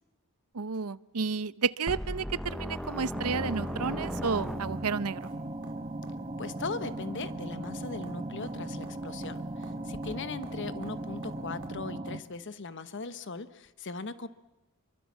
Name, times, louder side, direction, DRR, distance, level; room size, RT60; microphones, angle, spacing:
voice 1, 0.5-5.3, right 5 dB, 80° right, 17 dB, 0.8 m, -31 dB
sound 1, 1.9-5.1, equal, ahead, 0.9 m, -37 dB
sound 2, 2.5-11.7 13.7-13.8, right 2 dB, 60° right, 5.7 m, -54 dB
sound 3, 3.1-12.2, right 1 dB, 25° right, 1.6 m, -38 dB
voice 2, 6.4-14.3, left 4 dB, 55° left, 13 dB, 1.1 m, -39 dB
28.0 x 24.0 x 7.3 m, 1.0 s
head